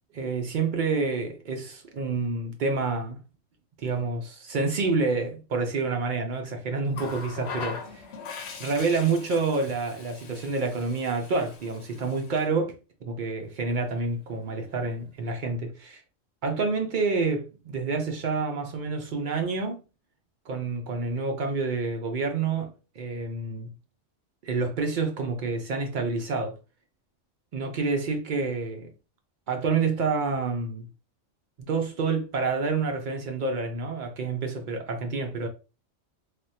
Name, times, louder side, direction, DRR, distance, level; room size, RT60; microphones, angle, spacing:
voice 1, 0.1-3.2 3.8-8.0 8.6-12.7 13.0-16.0 16.4-19.8 20.5-23.7 24.4-26.6 27.5-28.9 29.5-30.9 31.6-35.5, right 4 dB, 65° right, 0.5 m, -28 dB
Water tap faucet, 6.9-12.5 13.7-13.9, left 5 dB, 65° left, 0.8 m, -41 dB
3.2 x 2.1 x 2.7 m
omnidirectional pair, 1.3 m